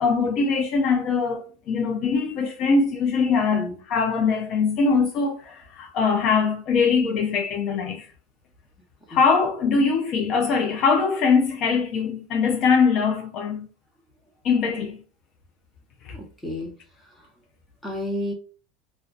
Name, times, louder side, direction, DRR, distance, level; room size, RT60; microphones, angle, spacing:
voice 1, 0.0-8.1 9.1-13.7 14.4-15.0 16.0-16.2, left 5 dB, 45° left, 0.4 m, -22 dB
voice 2, 16.1-16.8 17.0-17.3 17.8-18.3, left 1 dB, 10° left, 0.9 m, -32 dB
2.4 x 2.2 x 2.3 m
supercardioid pair, 135°, 0 cm